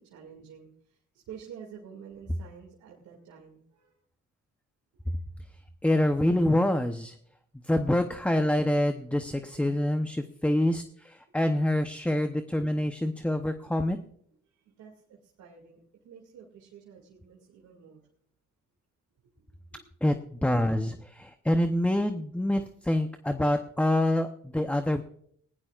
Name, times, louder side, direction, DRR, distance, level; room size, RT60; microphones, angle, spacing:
voice 1, 0.0-3.9 13.6-13.7 14.5-18.0 19.7-19.8, right 7 dB, 80° right, -1 dB, 2.4 m, -49 dB
voice 2, 5.8-7.2 7.6-14.0 20.0-25.0, left 1 dB, 5° left, 7 dB, 0.8 m, -26 dB
20.0 x 17.0 x 2.4 m, 0.65 s
cardioid pair, 90°, 30 cm